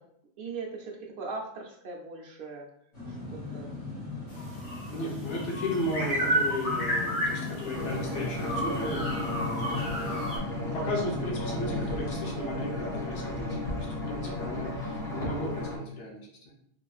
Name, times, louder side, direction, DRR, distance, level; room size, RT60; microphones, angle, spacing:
voice 1, 0.4-2.7 3.1-3.7 4.9-5.1 9.6-10.1 14.2-14.7, right 3 dB, 60° right, 0 dB, 0.7 m, -41 dB
sound 1, 2.9-12.1, left 3 dB, 50° left, 1.4 m, -38 dB
sound 2, 4.3-10.4, right 1 dB, 35° left, 0.9 m, -32 dB
voice 2, 4.9-10.3 10.6-16.3, left 1 dB, 85° left, -1 dB, 1.0 m, -35 dB
sound 3, 7.7-15.8, left 2 dB, 5° left, 0.5 m, -34 dB
3.0 x 2.4 x 2.3 m, 0.72 s
omnidirectional pair, 1.2 m